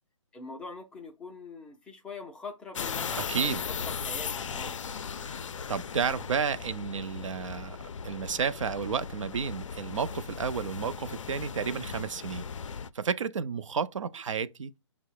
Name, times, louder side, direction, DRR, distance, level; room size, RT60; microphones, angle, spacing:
voice 1, 0.3-4.8, left 3 dB, 5° left, 0.4 m, -44 dB
sound 1, 2.7-12.9, left 6 dB, 70° left, 0.4 m, -37 dB
voice 2, 3.2-3.6 5.2-5.4 5.7-7.8 8.0-12.5 12.9-14.7, right 6 dB, 75° right, 0.4 m, -31 dB
5.3 x 2.1 x 4.5 m
figure-of-eight pair, 140°, 17 cm